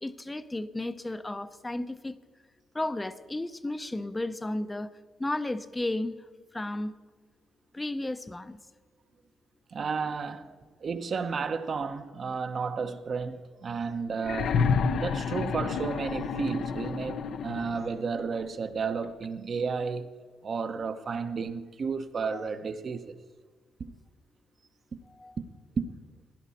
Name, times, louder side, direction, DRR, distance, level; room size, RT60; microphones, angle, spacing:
voice 1, 0.0-2.1 2.7-4.9 5.2-6.1 6.5-6.9 7.7-8.6 22.3-22.5 25.1-25.4, left 2 dB, 15° left, 0.6 m, -33 dB
voice 2, 9.7-14.6 14.9-20.1 20.4-23.2 23.8-23.9 25.4-25.5 25.8-25.9, right 5 dB, 45° right, 0.9 m, -32 dB
sound 1, 14.2-18.0 19.2-19.3, left 5 dB, 70° left, 0.6 m, -29 dB
16.5 x 10.5 x 4.2 m
cardioid pair, 90°, 0 cm